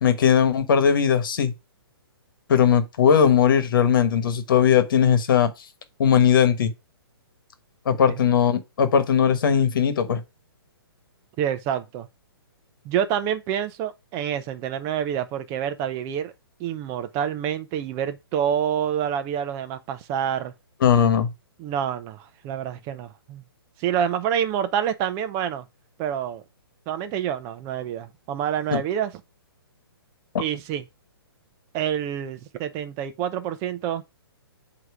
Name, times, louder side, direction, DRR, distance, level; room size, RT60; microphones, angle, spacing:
voice 1, 0.0-1.5 2.5-5.5 6.0-6.7 7.8-10.2 20.8-21.3 28.7-28.8, left 8 dB, 55° left, 1.3 m, -19 dB
voice 2, 11.4-12.1 12.8-16.3 16.6-20.5 21.6-23.4 23.8-25.6 26.0-26.4 26.9-29.1 30.4-30.8 31.7-34.0, right 9 dB, 25° right, 0.7 m, -27 dB
7.9 x 3.0 x 4.8 m
hypercardioid pair, 150°, 13 cm